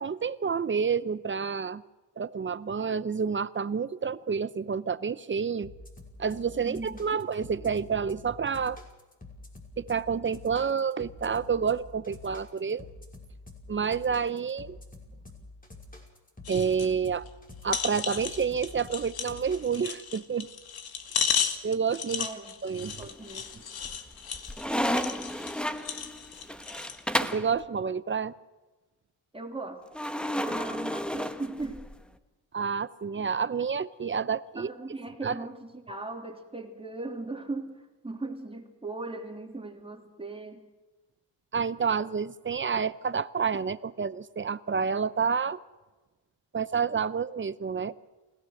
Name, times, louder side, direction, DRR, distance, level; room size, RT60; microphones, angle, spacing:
voice 1, 0.0-1.8 2.2-5.7 6.2-8.8 9.8-12.9 13.7-14.8 16.5-17.3 17.6-20.5 21.6-22.3 22.6-23.0 27.2-28.3 32.5-34.7 35.2-35.3 41.5-45.6 46.5-47.9, right 6 dB, 30° right, 15 dB, 0.8 m, -29 dB
sound 1, 5.6-19.9, left 2 dB, 20° left, 5.9 m, -47 dB
voice 2, 6.6-7.0 22.2-22.5 23.0-23.6 29.3-29.8 30.4-31.9 34.5-40.6, right 2 dB, 15° right, 3 dB, 3.0 m, -38 dB
sound 2, 16.4-16.9 17.3-17.4 17.7-27.0 27.5-27.6, left 7 dB, 60° left, 2.5 m, -34 dB
sound 3, 22.8-23.4 23.8-27.5 29.9-32.0, equal, ahead, 1.2 m, -32 dB
29.0 x 17.5 x 6.5 m, 1.2 s
cardioid pair, 95°, 42 cm